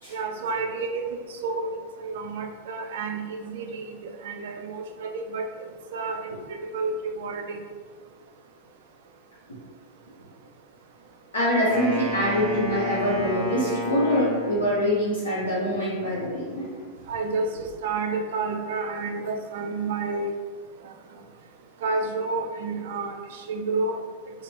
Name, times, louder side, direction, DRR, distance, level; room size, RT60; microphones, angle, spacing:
voice 1, 0.1-1.7 2.0-4.0 4.2-7.6 17.1-20.3 21.8-24.0, right 3 dB, 55° right, 4 dB, 0.3 m, -30 dB
voice 2, 11.3-16.7, equal, 75° left, -9 dB, 0.7 m, -24 dB
Wind instrument woodwind instrument, 11.7-15.2, equal, 35° right, 0.8 m, -31 dB
2.7 x 2.0 x 2.8 m, 1.5 s
figure-of-eight pair, 90°, 0 cm